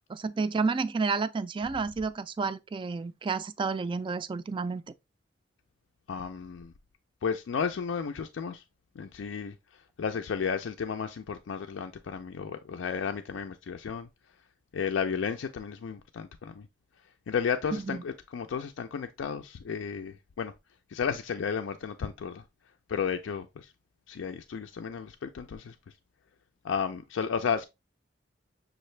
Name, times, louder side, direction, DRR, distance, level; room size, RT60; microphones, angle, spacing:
voice 1, 0.1-4.8 17.9-18.0, right 4 dB, 25° right, 0.3 m, -30 dB
voice 2, 6.1-6.7 7.2-8.6 9.0-14.1 14.7-16.7 17.3-20.5 20.9-22.4 22.9-23.7 24.1-25.9 26.6-27.6, left 6 dB, 85° left, 0.4 m, -33 dB
6.4 x 2.5 x 3.1 m
head